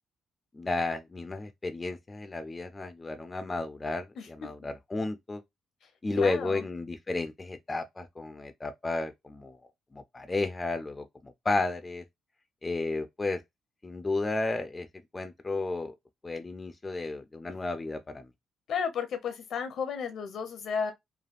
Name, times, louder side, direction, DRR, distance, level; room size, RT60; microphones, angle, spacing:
voice 1, 0.5-5.4 6.0-9.6 9.9-12.0 12.6-13.4 13.8-14.9 15.1-15.9 16.2-18.3, left 3 dB, 25° left, 0.4 m, -33 dB
voice 2, 6.1-6.6 18.7-20.9, left 6 dB, 70° left, 0.7 m, -33 dB
3.2 x 2.3 x 2.4 m
cardioid pair, 90°, 0 cm